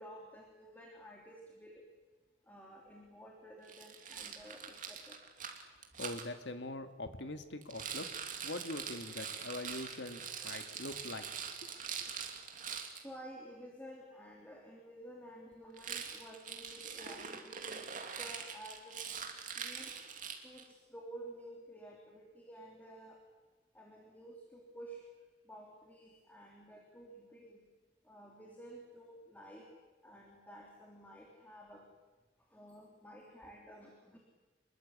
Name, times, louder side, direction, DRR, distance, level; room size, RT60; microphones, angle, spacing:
voice 1, 0.0-1.8 2.4-5.2 10.4-10.5 12.9-19.0 19.5-19.9 20.4-23.2 23.7-25.1 25.4-27.6 28.0-29.7 30.0-31.8 32.5-34.2, right 1 dB, 10° left, -1 dB, 3.3 m, -52 dB
Rattle, 3.7-6.3 7.6-13.0 15.7-20.7, right 7 dB, 45° right, 2.8 m, -44 dB
voice 2, 6.0-8.1 8.4-11.3, left 2 dB, 70° left, 7 dB, 2.0 m, -43 dB
26.0 x 22.5 x 8.4 m, 1.2 s
head